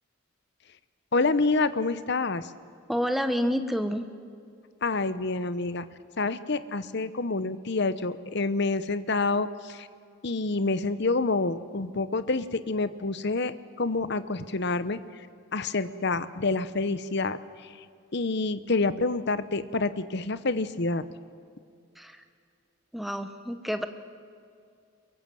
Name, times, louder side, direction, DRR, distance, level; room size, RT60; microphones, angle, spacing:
voice 1, 1.1-2.5 4.8-5.9 6.2-9.9 10.2-15.0 15.5-17.4 18.1-21.1, left 3 dB, 55° left, 13 dB, 0.9 m, -27 dB
voice 2, 2.9-4.0 22.0-22.2 22.9-23.9, equal, ahead, 8 dB, 1.0 m, -28 dB
23.0 x 23.0 x 7.8 m, 2.4 s
head